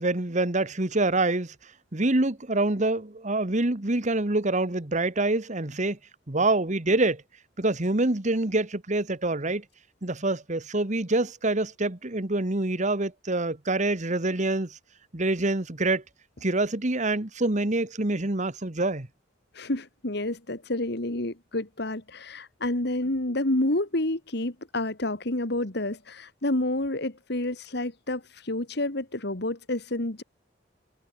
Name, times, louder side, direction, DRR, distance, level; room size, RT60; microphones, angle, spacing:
voice 1, 0.0-1.5 1.9-6.0 6.3-7.2 7.6-9.6 10.0-14.8 15.1-16.0 16.4-19.1, right 2 dB, 40° right, 1.6 m, -26 dB
voice 2, 19.5-30.2, left 1 dB, 65° left, 2.3 m, -29 dB
head